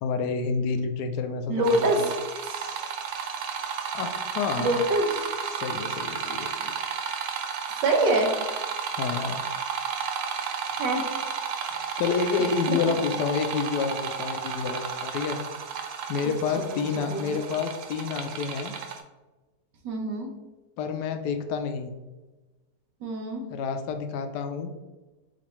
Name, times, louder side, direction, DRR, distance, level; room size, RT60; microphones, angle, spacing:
voice 1, 0.0-2.1 3.9-4.8 5.5-6.7 9.0-9.4 11.7-15.4 16.1-18.7 20.8-21.9 23.5-24.7, left 5 dB, 75° left, 7 dB, 1.1 m, -29 dB
voice 2, 1.5-2.0 2.4-2.8 4.6-5.3 7.8-8.3 10.7-11.1 12.7-12.8 16.2-16.3 16.7-16.8 17.1-17.2 19.8-20.3 23.0-23.4, right 2 dB, 90° right, 2 dB, 1.5 m, -25 dB
sound 1, 1.6-19.0, right 6 dB, 75° right, 0.7 m, -33 dB
7.0 x 2.5 x 3.0 m, 1.2 s
omnidirectional pair, 1.8 m